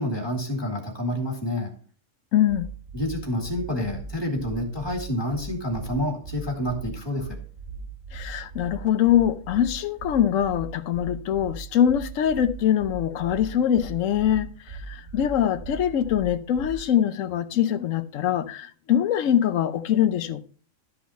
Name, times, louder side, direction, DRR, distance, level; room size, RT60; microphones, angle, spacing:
voice 1, 0.0-1.8 2.9-7.4, left 1 dB, 20° left, 2.0 m, -28 dB
voice 2, 2.3-2.7 8.1-20.4, left 10 dB, 70° left, 1.1 m, -23 dB
sound 1, 2.5-17.0, right 4 dB, 75° right, 2.6 m, -38 dB
12.5 x 5.9 x 4.2 m
omnidirectional pair, 1.4 m